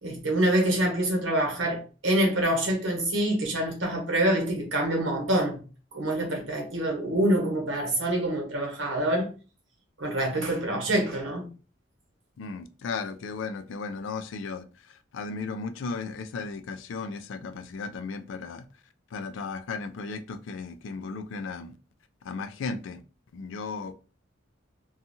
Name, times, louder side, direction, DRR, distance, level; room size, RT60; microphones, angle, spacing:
voice 1, 0.0-5.6 5.9-9.3 10.0-11.5, right 1 dB, 70° right, 1.1 m, -26 dB
voice 2, 12.4-18.6 19.1-21.7 22.2-23.0 23.3-23.9, left 4 dB, 70° left, 0.4 m, -35 dB
2.7 x 2.3 x 2.6 m
head